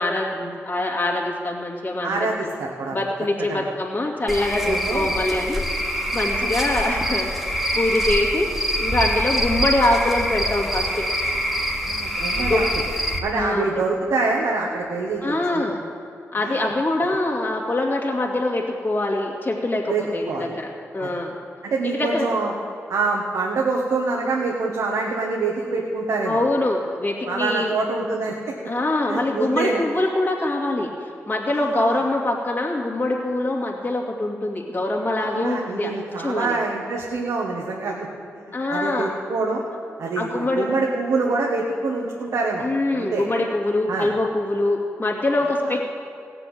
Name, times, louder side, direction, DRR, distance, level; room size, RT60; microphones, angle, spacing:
voice 1, 0.0-2.3 2.9-8.5 8.8-11.0 12.4-12.6 13.3-13.6 15.2-15.9 16.3-21.3 21.8-22.3 26.2-27.7 28.6-35.9 36.2-36.6 38.5-39.1 40.2-40.7 42.6-45.8, left 2 dB, 35° left, -2 dB, 2.3 m, -24 dB
voice 2, 2.0-3.0 3.5-3.6 4.6-5.1 11.8-12.7 13.2-15.6 16.4-16.7 19.9-20.4 21.0-21.1 21.6-22.5 22.9-26.4 27.3-28.5 29.1-29.8 31.5-32.0 35.2-38.1 38.3-38.4 38.7-39.6 40.0-42.7 42.9-43.2 43.9-44.1 45.6-45.8, right 3 dB, 85° right, -1 dB, 1.5 m, -25 dB
Cricket / Frog, 4.3-13.2, equal, ahead, 1.7 m, -25 dB
16.5 x 6.9 x 9.1 m, 2.6 s
cardioid pair, 75°, 5 cm